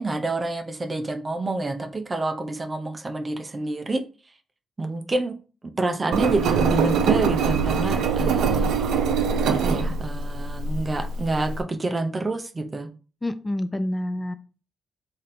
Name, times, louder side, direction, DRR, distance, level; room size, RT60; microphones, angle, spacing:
voice 1, 0.0-4.0 4.8-5.4 5.6-8.7 9.4-12.9, right 2 dB, 35° right, 0.6 m, -27 dB
Engine, 6.1-11.6, right 5 dB, 85° right, 0.5 m, -23 dB
voice 2, 13.2-14.3, left 1 dB, 20° left, 0.4 m, -27 dB
3.2 x 2.7 x 4.1 m
supercardioid pair, 55°, 0 cm